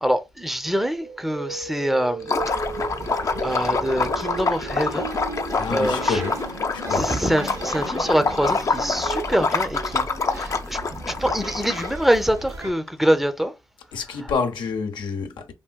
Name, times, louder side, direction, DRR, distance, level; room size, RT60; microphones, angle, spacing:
voice 1, 0.0-2.3 3.4-5.1 5.7-6.2 6.9-10.8 11.1-13.5, equal, 5° right, 0.6 m, -24 dB
sound 1, 1.0-9.9, right 3 dB, 85° right, 1.6 m, -37 dB
Liquid, 2.2-12.1, left 4 dB, 40° left, 0.6 m, -26 dB
sound 2, 2.3-12.7, right 3 dB, 40° right, 0.7 m, -36 dB
voice 2, 5.5-6.5 6.7-7.1 13.9-15.5, left 5 dB, 75° left, 0.7 m, -28 dB
3.5 x 2.4 x 2.2 m
supercardioid pair, 55°, 8 cm